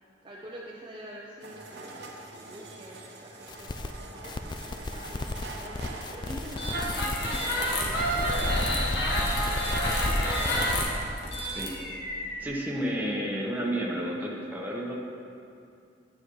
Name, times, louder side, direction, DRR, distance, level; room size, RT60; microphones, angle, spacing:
voice 1, 0.2-4.3 4.9-5.8 6.1-10.9, equal, 30° right, -4 dB, 0.7 m, -46 dB
sound 1, 1.4-10.9, right 2 dB, 80° right, 1.1 m, -44 dB
sound 2, 3.5-3.9 4.2-7.5 7.8-10.8, left 2 dB, 25° left, 0.3 m, -36 dB
sound 3, 6.5-12.4, equal, 70° left, 1.4 m, -28 dB
voice 2, 11.4-11.7 12.4-15.0, equal, 10° right, -4 dB, 1.2 m, -31 dB
9.7 x 9.5 x 3.2 m, 2.5 s
head